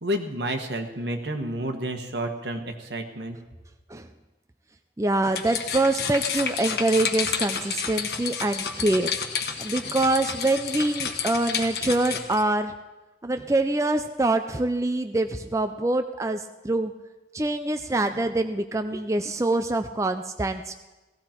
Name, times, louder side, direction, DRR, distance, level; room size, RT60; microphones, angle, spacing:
voice 1, 0.0-3.4, right 1 dB, 75° right, 5 dB, 1.4 m, -30 dB
voice 2, 5.0-9.1 9.6-12.7 13.2-16.9 17.3-20.7, right 2 dB, 15° right, 7 dB, 0.4 m, -25 dB
sound 1, 5.2-12.4, left 6 dB, 60° left, 1.2 m, -30 dB
17.5 x 15.0 x 4.5 m, 1.1 s
head